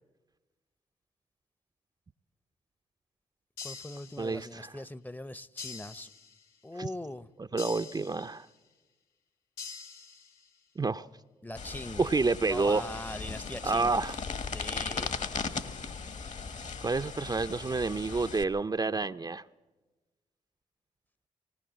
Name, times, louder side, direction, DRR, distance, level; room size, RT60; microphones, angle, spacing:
sound 1, 3.6-4.6 5.6-6.6 7.6-8.6 9.6-10.6, left 5 dB, 90° left, 1.4 m, -45 dB
voice 1, 3.6-6.1 6.6-7.3 11.4-12.0 12.5-14.2 14.5-15.2 15.5-15.6, left 1 dB, 10° left, 0.7 m, -41 dB
voice 2, 4.2-4.7 6.8-6.9 7.5-8.5 10.8-11.1 12.0-12.9 13.6-14.1 16.8-19.4, right 3 dB, 25° right, 0.6 m, -29 dB
sound 2, 11.6-18.4, left 5 dB, 55° left, 1.5 m, -38 dB
18.5 x 18.5 x 7.6 m
supercardioid pair, 50°, 15 cm